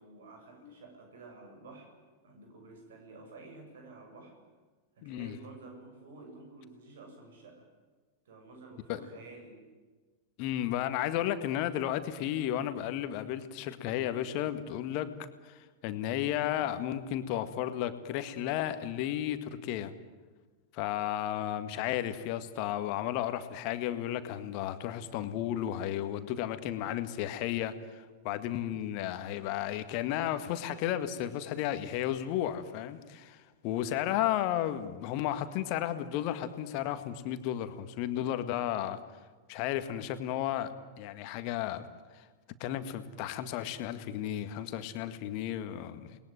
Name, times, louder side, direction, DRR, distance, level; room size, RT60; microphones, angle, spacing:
voice 1, 0.0-1.9 2.2-4.3 5.0-7.7 8.2-9.6, right 3 dB, 60° right, 4 dB, 7.6 m, -51 dB
voice 2, 5.0-5.4 8.9-9.0 10.4-15.2 15.4-19.9 20.7-39.0 39.5-41.9 42.1-42.3 42.6-46.2, left 12 dB, 45° left, 10 dB, 1.9 m, -33 dB
29.0 x 20.5 x 9.3 m, 1.4 s
figure-of-eight pair, 90°, 0 cm